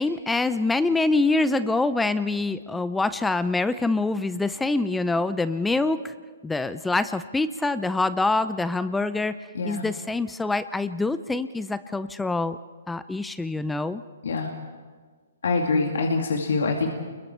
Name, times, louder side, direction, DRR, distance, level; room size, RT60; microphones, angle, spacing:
voice 1, 0.0-6.1 6.4-9.4 9.6-12.6 12.9-14.0, left 3 dB, 5° left, 13 dB, 0.5 m, -25 dB
voice 2, 15.4-16.9, left 3 dB, 75° left, 1 dB, 2.3 m, -24 dB
29.5 x 22.0 x 4.5 m, 1.5 s
hypercardioid pair, 145°, 0 cm